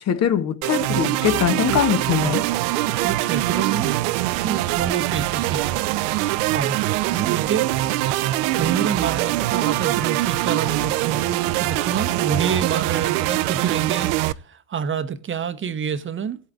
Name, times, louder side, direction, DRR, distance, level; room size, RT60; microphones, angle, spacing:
voice 1, 0.1-2.4, left 9 dB, 40° left, 0.9 m, -21 dB
sound 1, 0.6-14.3, right 16 dB, 65° right, 0.6 m, -23 dB
voice 2, 2.9-4.0 4.4-5.8 6.1-7.7 8.6-14.1 14.4-16.4, right 7 dB, 30° right, 0.8 m, -27 dB
17.0 x 8.0 x 2.4 m
hypercardioid pair, 70°, 42 cm